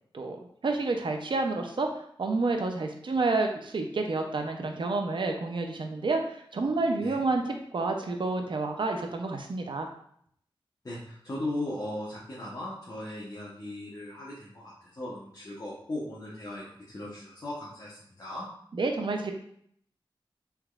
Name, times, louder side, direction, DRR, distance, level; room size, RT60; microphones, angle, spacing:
voice 1, 0.6-9.9 18.7-19.3, right 3 dB, 60° right, 3 dB, 0.5 m, -29 dB
voice 2, 10.8-18.5, left 1 dB, 40° left, -7 dB, 0.9 m, -38 dB
3.4 x 3.0 x 2.3 m, 0.66 s
wide cardioid pair, 65°, 9 cm